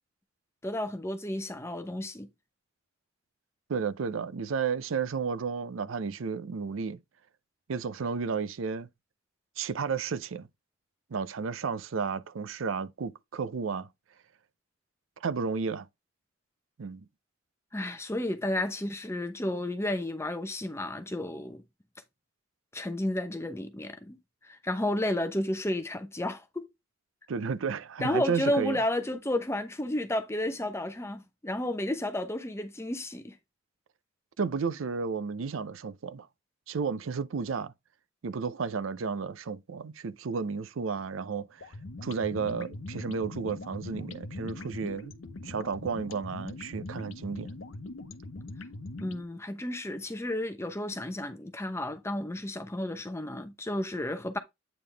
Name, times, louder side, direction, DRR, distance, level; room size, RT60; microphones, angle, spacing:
voice 1, 0.6-2.3 17.7-21.6 22.7-24.2 24.4-26.7 28.0-33.4 49.0-54.4, left 1 dB, 15° left, 0.7 m, -32 dB
voice 2, 3.7-7.0 7.7-8.9 9.6-10.5 11.1-13.9 15.2-15.9 16.8-17.0 27.3-28.8 34.4-36.3 36.7-37.7 38.2-41.5 42.0-45.1 45.4-47.5, right 5 dB, 85° right, 0.5 m, -32 dB
sound 1, 41.6-49.2, left 2 dB, 85° left, 0.8 m, -41 dB
8.7 x 3.7 x 3.3 m
head